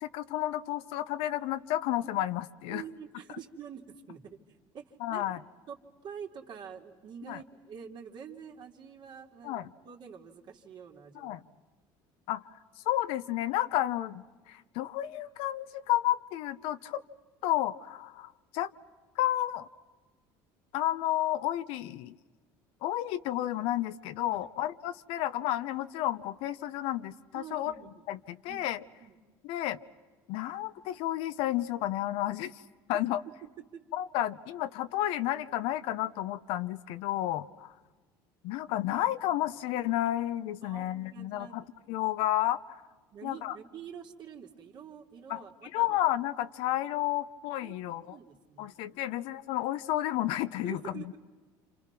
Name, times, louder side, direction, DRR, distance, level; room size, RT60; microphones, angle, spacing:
voice 1, 0.0-2.8 5.0-5.4 7.3-7.4 9.4-9.7 11.1-11.4 12.3-12.4 12.8-17.0 17.4-18.7 19.2-19.7 20.7-22.2 22.8-27.7 28.1-28.8 29.4-29.8 30.3-32.6 32.9-33.2 33.9-37.7 38.4-42.8 43.2-43.6 45.3-45.4 45.7-48.2 48.6-51.0, left 14 dB, 75° left, 12 dB, 1.0 m, -31 dB
voice 2, 2.7-5.3 5.7-5.8 6.0-11.4 24.2-24.5 27.3-28.1 28.5-28.7 29.0-29.2 33.7-33.8 40.6-41.7 43.1-46.0 47.6-48.8 49.0-49.2 50.6-51.2, right 7 dB, 50° right, 2 dB, 2.8 m, -47 dB
29.0 x 27.0 x 6.0 m, 1.3 s
cardioid pair, 110°, 10 cm